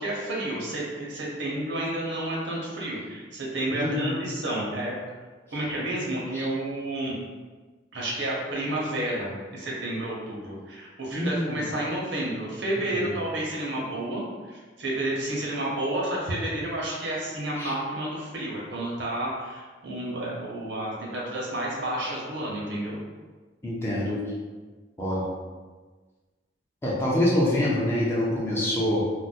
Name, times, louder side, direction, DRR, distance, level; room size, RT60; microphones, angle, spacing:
voice 1, 0.0-4.9 5.5-7.1 7.9-14.2 14.5-23.0, right 1 dB, 75° right, -4 dB, 0.9 m, -30 dB
voice 2, 3.7-4.2 6.3-6.5 11.1-11.7 12.9-13.1 17.6-17.7 23.6-24.2 25.0-25.3 26.8-29.1, left 1 dB, 15° left, -7 dB, 0.5 m, -26 dB
2.5 x 2.1 x 4.0 m, 1.4 s
head